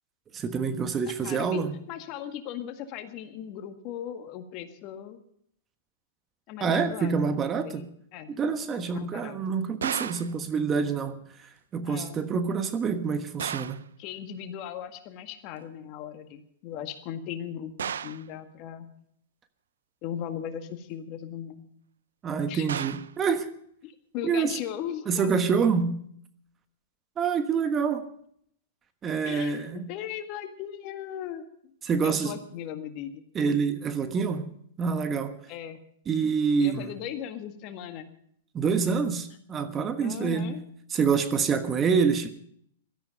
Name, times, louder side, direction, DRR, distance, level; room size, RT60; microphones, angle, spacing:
voice 1, 0.3-1.7 6.6-7.8 8.3-11.2 11.7-13.8 22.2-23.5 24.2-24.5 25.1-26.0 27.2-28.1 29.0-29.8 31.8-32.4 33.3-34.5 34.8-35.4 36.1-36.9 38.5-40.6 40.9-42.3, right 5 dB, 25° right, 1.3 m, -26 dB
voice 2, 1.0-5.2 6.5-7.9 8.1-8.3 8.9-9.4 11.8-12.2 14.0-18.9 20.0-21.7 22.5-22.7 23.8-25.3 29.2-31.4 32.0-33.2 35.5-35.8 36.6-38.1 40.0-40.6, left 10 dB, 45° left, 1.8 m, -38 dB
sound 1, 9.8-10.4 13.4-13.9 17.8-18.3 22.7-23.2, right 8 dB, 75° right, 0.5 m, -33 dB
16.5 x 13.0 x 5.2 m
hypercardioid pair, 110°, 0 cm